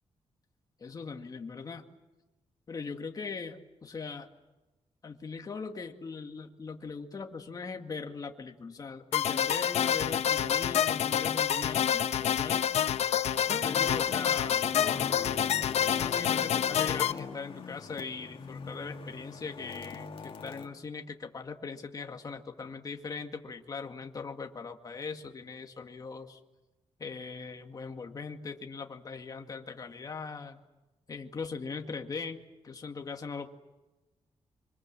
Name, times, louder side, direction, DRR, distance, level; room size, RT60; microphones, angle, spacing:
voice 1, 0.8-1.9 2.7-4.3 5.0-12.7 13.5-15.3 16.0-26.4 27.0-30.6 31.1-33.5, left 4 dB, 35° left, 4 dB, 2.0 m, -40 dB
sound 1, 9.1-17.1, left 9 dB, 85° left, 0.9 m, -28 dB
sound 2, 13.6-20.7, left 5 dB, 55° left, 2.4 m, -42 dB
26.0 x 25.5 x 7.6 m, 1.1 s
wide cardioid pair, 155°, 11 cm